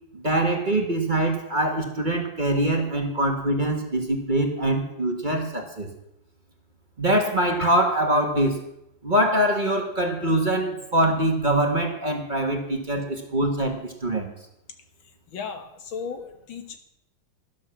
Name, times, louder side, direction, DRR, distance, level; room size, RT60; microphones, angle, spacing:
voice 1, 0.1-5.9 7.0-8.6 9.0-14.3, right 1 dB, 25° right, 3 dB, 1.6 m, -23 dB
voice 2, 15.3-16.8, left 6 dB, 80° left, 7 dB, 2.2 m, -35 dB
12.5 x 11.5 x 7.1 m, 0.80 s
omnidirectional pair, 2.1 m